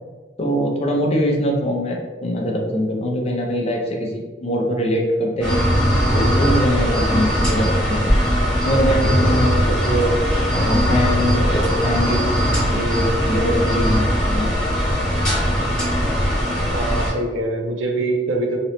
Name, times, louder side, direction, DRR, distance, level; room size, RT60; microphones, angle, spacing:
voice 1, 0.4-5.6 6.1-8.3 8.6-10.1 10.5-12.3 12.7-14.5, equal, 35° left, 0 dB, 0.6 m, -22 dB
sound 1, 5.4-17.1, equal, 5° left, 1.4 m, -19 dB
voice 2, 16.5-18.6, right 2 dB, 85° right, 3 dB, 0.6 m, -24 dB
3.0 x 2.9 x 3.0 m, 1.3 s
head